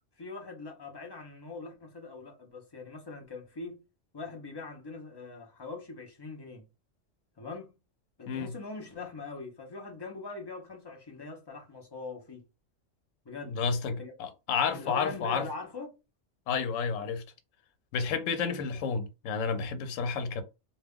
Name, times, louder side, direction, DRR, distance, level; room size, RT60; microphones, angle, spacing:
voice 1, 0.2-3.8 4.1-6.7 7.4-7.7 8.2-12.4 13.3-13.6 14.0-14.1 14.7-16.0, left 3 dB, 40° left, 0.4 m, -42 dB
voice 2, 13.4-15.5 16.5-17.2 17.9-20.4, left 5 dB, 85° left, 0.9 m, -31 dB
2.2 x 2.1 x 3.4 m
omnidirectional pair, 1.3 m